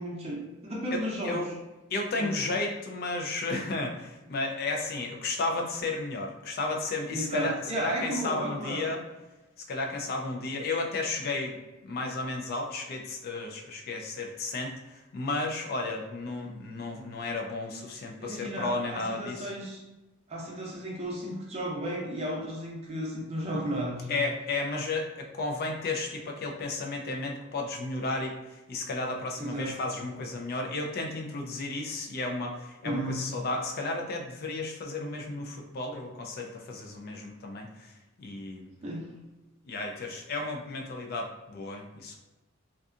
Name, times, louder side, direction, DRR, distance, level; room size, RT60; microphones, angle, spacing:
voice 1, 0.0-1.5 2.2-2.4 7.1-8.9 18.2-19.8 20.3-24.2 29.4-29.7 32.8-33.3 38.8-39.1, right 1 dB, 30° right, -3 dB, 0.6 m, -34 dB
voice 2, 0.9-1.5 1.9-9.0 9.7-11.6 11.8-19.5 24.1-37.9 38.2-38.7 39.7-42.2, left 3 dB, 50° left, 2 dB, 0.4 m, -33 dB
2.6 x 2.3 x 2.4 m, 1.1 s
head